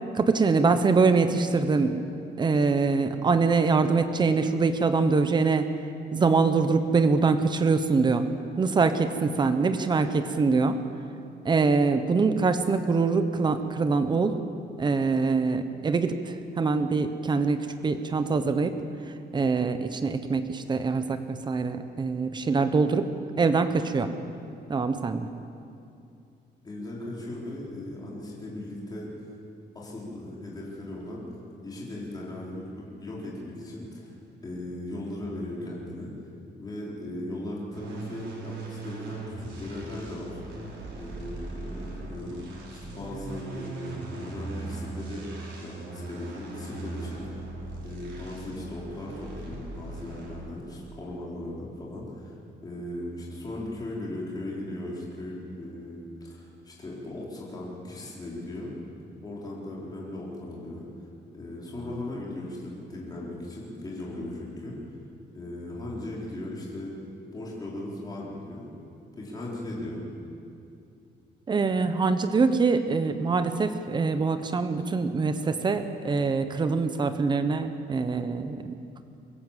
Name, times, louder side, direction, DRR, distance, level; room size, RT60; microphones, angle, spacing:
voice 1, 0.1-2.0 2.4-5.7 6.1-8.3 8.6-10.8 11.4-14.4 14.8-23.1 23.4-24.1 24.7-25.3 71.5-78.8, right 4 dB, 25° right, 9 dB, 1.0 m, -24 dB
voice 2, 26.6-29.1 29.7-31.2 31.6-32.7 33.0-34.2 34.4-36.1 36.6-40.4 41.0-45.3 45.6-47.4 47.8-52.4 52.6-58.7 59.2-60.9 61.3-64.7 65.3-66.9 67.3-68.7 69.1-70.1, left 1 dB, 20° left, -5 dB, 4.5 m, -37 dB
sound 1, 37.7-50.7, right 3 dB, 90° right, 5.8 m, -39 dB
24.5 x 16.0 x 7.6 m, 2.6 s
cardioid pair, 170°, 18 cm